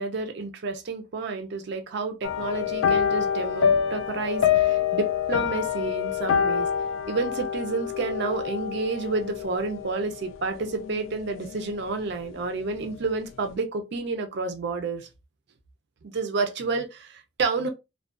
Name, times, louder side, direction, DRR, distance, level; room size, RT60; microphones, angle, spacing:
voice 1, 0.0-6.7 7.1-15.1 16.0-17.7, right 3 dB, 60° right, 0.5 m, -30 dB
sound 1, 2.2-11.8 12.1-12.5 12.8-12.9, left 8 dB, 85° left, 0.3 m, -27 dB
2.4 x 2.2 x 2.4 m
head